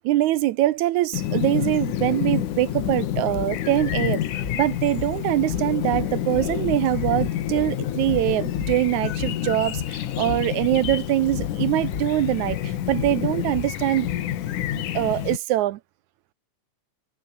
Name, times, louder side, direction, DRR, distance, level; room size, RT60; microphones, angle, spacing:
voice 1, 0.0-4.2 4.5-14.1 14.7-15.8, right 15 dB, 75° right, 2.1 m, -23 dB
Chirp tweet, 1.1-15.4, left 12 dB, 80° left, 2.9 m, -28 dB
sound 1, 2.8-14.2, left 4 dB, 30° left, 2.0 m, -37 dB
omnidirectional pair, 3.6 m